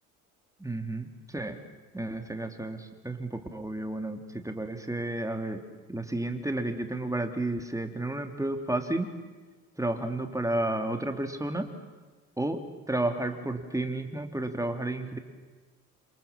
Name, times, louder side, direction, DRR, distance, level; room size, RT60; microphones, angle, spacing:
voice 1, 0.6-1.6 1.9-5.6 5.9-9.1 9.8-11.7 12.4-15.2, right 2 dB, 5° right, 6 dB, 3.1 m, -32 dB
28.0 x 27.5 x 7.4 m, 1.3 s
hypercardioid pair, 50°, 43 cm